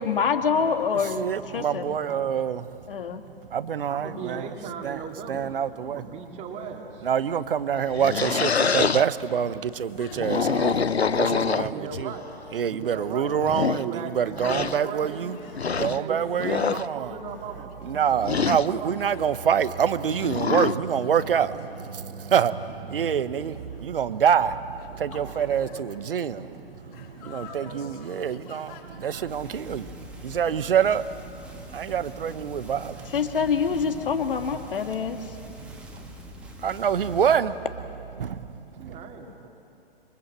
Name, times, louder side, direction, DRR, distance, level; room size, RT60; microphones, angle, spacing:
voice 1, 0.0-1.3 1.5-2.0 2.9-3.2 33.1-35.2, left 6 dB, 60° left, 2.0 m, -25 dB
voice 2, 1.2-2.6 3.5-4.5 4.8-5.0 5.3-6.0 7.0-10.8 11.2-12.1 12.5-15.4 15.8-17.1 17.8-28.7 29.0-33.2 35.6-36.1 36.6-37.6 38.2-38.5 38.7-39.0, right 8 dB, 60° right, 1.2 m, -26 dB
voice 3, 3.9-5.5 5.8-7.1 11.2-12.3 12.7-15.4 15.7-19.3 24.9-25.4 38.8-39.5, right 5 dB, 20° right, 2.3 m, -38 dB
sound 1, 7.8-9.1 10.1-12.0 12.8-12.9 13.4-13.8 14.4-14.8 15.5-16.0 16.4-16.9 18.2-18.7 20.1-20.8, left 5 dB, 85° left, 0.7 m, -25 dB
sound 2, 9.7-29.3, left 4 dB, 40° left, 5.4 m, -49 dB
sound 3, 29.3-37.4, left 1 dB, 5° right, 2.2 m, -44 dB
27.0 x 24.0 x 7.7 m
figure-of-eight pair, 120°, 31 cm